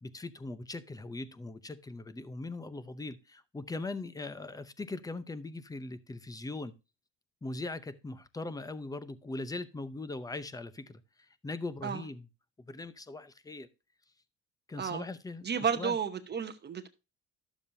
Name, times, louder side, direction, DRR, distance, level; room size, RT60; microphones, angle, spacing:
voice 1, 0.0-6.7 7.4-12.3 12.6-13.7 14.7-16.0, left 2 dB, 10° left, 0.7 m, -40 dB
voice 2, 15.4-16.9, right 7 dB, 35° right, 1.0 m, -32 dB
12.0 x 7.1 x 2.7 m
cardioid pair, 120°, 31 cm